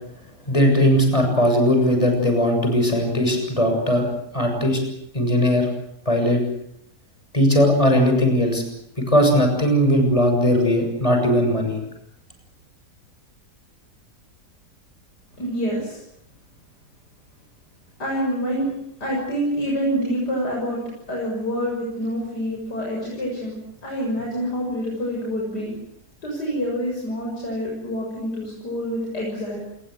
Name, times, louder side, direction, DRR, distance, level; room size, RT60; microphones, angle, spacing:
voice 1, 0.5-4.1 4.3-4.8 5.1-5.7 6.1-6.4 7.3-8.6 9.0-11.8, equal, 20° left, 4 dB, 7.2 m, -18 dB
voice 2, 15.4-16.0 18.0-18.7 19.0-20.8 21.1-25.7 26.2-29.6, equal, 90° left, -2 dB, 7.5 m, -27 dB
27.5 x 21.5 x 7.9 m, 0.74 s
omnidirectional pair, 1.7 m